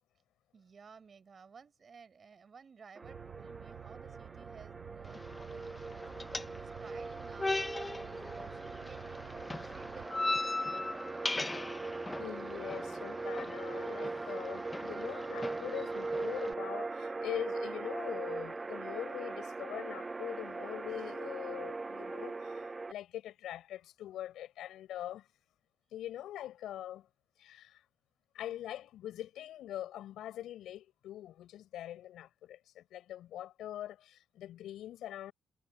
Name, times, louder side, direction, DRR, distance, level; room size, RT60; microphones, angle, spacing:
voice 1, 0.5-6.3 6.6-11.7, right 5 dB, 40° right, 6.8 m, -56 dB
sound 1, 3.0-22.9, right 3 dB, 25° right, 0.4 m, -40 dB
sound 2, 3.0-10.1, right 12 dB, 80° right, 6.1 m, -51 dB
sound 3, 5.0-16.5, left 2 dB, 20° left, 1.2 m, -40 dB
voice 2, 11.8-25.3 25.9-27.1 27.4-27.8 28.3-35.3, left 12 dB, 80° left, 6.5 m, -43 dB
cardioid pair, 90°, 0 cm